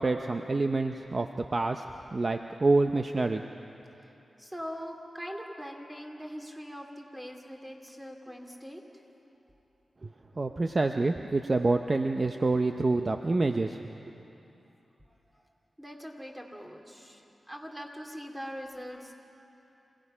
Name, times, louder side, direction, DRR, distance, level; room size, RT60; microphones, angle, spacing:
voice 1, 0.0-3.4 10.0-10.1 10.4-13.9, right 3 dB, 40° right, 6 dB, 0.7 m, -27 dB
voice 2, 4.4-8.8 15.3-15.4 15.8-19.1, equal, 10° right, 1 dB, 2.7 m, -42 dB
28.0 x 17.5 x 5.6 m, 2.9 s
cardioid pair, 65°, 0 cm